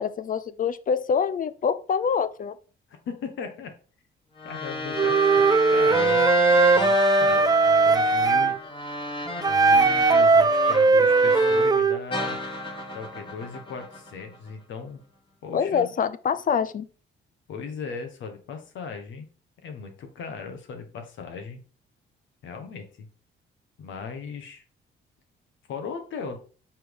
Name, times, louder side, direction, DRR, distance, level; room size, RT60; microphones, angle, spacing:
voice 1, 0.0-2.5 15.5-16.9, left 6 dB, 45° left, 0.6 m, -25 dB
voice 2, 2.9-3.7 4.4-6.3 6.7-8.5 9.4-12.4 12.9-15.0 15.4-15.9 17.5-19.3 19.6-21.6 22.4-23.1 23.8-24.6 25.7-26.4, left 5 dB, 75° left, 1.7 m, -38 dB
sound 1, 4.4-11.8 12.1-14.5, left 1 dB, 25° left, 2.1 m, -31 dB
Wind instrument woodwind instrument, 4.9-8.6 9.4-12.0, right 3 dB, 20° right, 0.4 m, -19 dB
6.0 x 4.5 x 4.9 m
cardioid pair, 90°, 20 cm